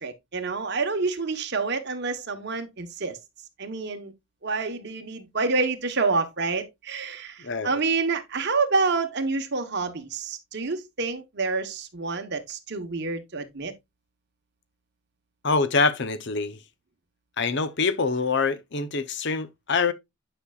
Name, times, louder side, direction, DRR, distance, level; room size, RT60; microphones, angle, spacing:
voice 1, 0.0-3.2 3.6-4.1 4.4-13.7, right 4 dB, 50° right, 1.1 m, -28 dB
voice 2, 7.4-7.7 15.4-16.6 17.4-19.9, left 4 dB, 55° left, 0.7 m, -25 dB
9.8 x 5.4 x 2.4 m
head